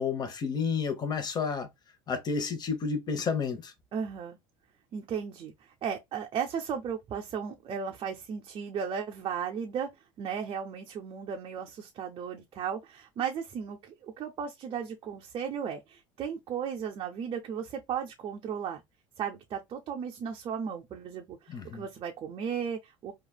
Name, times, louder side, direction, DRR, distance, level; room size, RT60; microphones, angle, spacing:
voice 1, 0.0-1.7 2.1-3.7 21.5-21.9, left 5 dB, 35° left, 1.0 m, -31 dB
voice 2, 3.9-4.4 4.9-9.9 10.2-18.8 19.2-23.1, right 7 dB, 45° right, 0.6 m, -35 dB
3.2 x 2.3 x 2.2 m
supercardioid pair, 90°, 12 cm